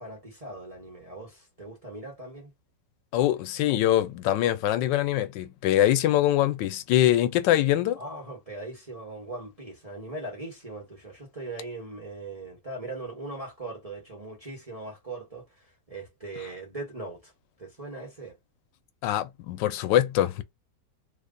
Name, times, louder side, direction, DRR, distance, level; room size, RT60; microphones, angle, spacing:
voice 1, 0.0-2.5 8.0-17.3 17.6-18.4, right 2 dB, 25° right, 1.1 m, -40 dB
voice 2, 3.1-8.0 19.0-20.4, left 13 dB, 85° left, 1.3 m, -23 dB
3.1 x 2.2 x 3.7 m
omnidirectional pair, 1.9 m